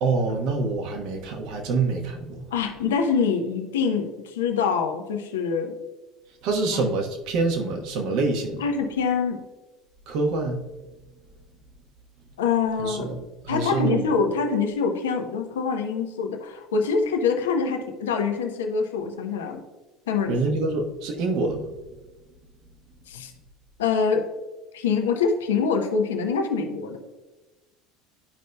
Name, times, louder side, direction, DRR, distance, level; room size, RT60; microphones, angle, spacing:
voice 1, 0.0-2.4 6.4-8.6 10.1-10.6 12.8-14.0 20.3-21.6, right 3 dB, 60° right, 3 dB, 1.2 m, -26 dB
voice 2, 2.5-5.7 6.7-6.8 8.6-9.4 12.4-13.1 13.5-19.6 20.1-20.4 23.1-23.3 23.8-24.3 24.7-27.0, left 5 dB, 80° left, 4 dB, 0.8 m, -25 dB
11.5 x 5.2 x 2.2 m, 1.1 s
hypercardioid pair, 75°, 0 cm